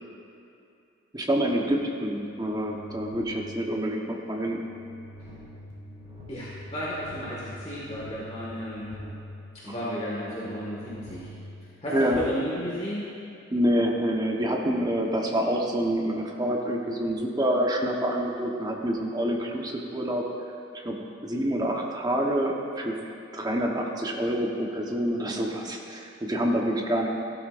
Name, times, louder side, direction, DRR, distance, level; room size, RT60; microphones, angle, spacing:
voice 1, 1.1-4.6 9.7-9.8 11.9-12.2 13.5-20.2 20.8-21.0 21.2-23.0 23.3-27.1, equal, 20° right, 0 dB, 1.1 m, -27 dB
sound 1, 1.8-12.4, equal, 35° right, 2.9 m, -46 dB
voice 2, 6.3-8.9 9.6-11.3 11.8-13.0, equal, 30° left, -7 dB, 1.8 m, -33 dB
15.5 x 12.5 x 2.6 m, 2.7 s
head